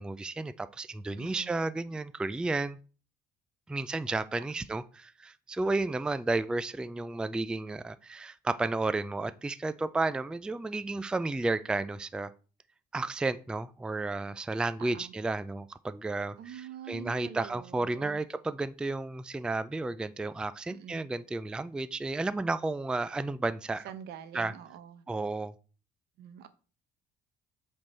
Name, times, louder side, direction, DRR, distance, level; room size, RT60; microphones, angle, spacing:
voice 1, 0.0-2.8 3.7-12.3 12.9-23.9 24.3-24.5 25.1-25.5, right 2 dB, 5° right, 0.3 m, -32 dB
voice 2, 1.2-1.6 14.8-15.1 16.4-18.2 20.7-21.0 23.8-25.0 26.2-26.5, right 9 dB, 75° right, 0.9 m, -45 dB
7.8 x 3.8 x 4.2 m
cardioid pair, 110°, 17 cm